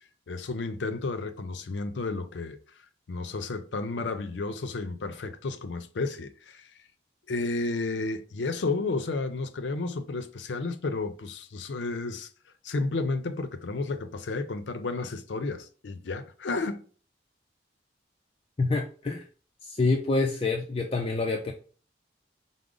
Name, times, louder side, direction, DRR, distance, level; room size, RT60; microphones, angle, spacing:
voice 1, 0.3-2.6 3.1-6.7 7.3-12.3 12.6-16.8, left 3 dB, 85° left, 0.5 m, -32 dB
voice 2, 18.6-19.2 19.6-21.5, left 3 dB, 30° left, 0.4 m, -27 dB
4.9 x 2.0 x 3.7 m
head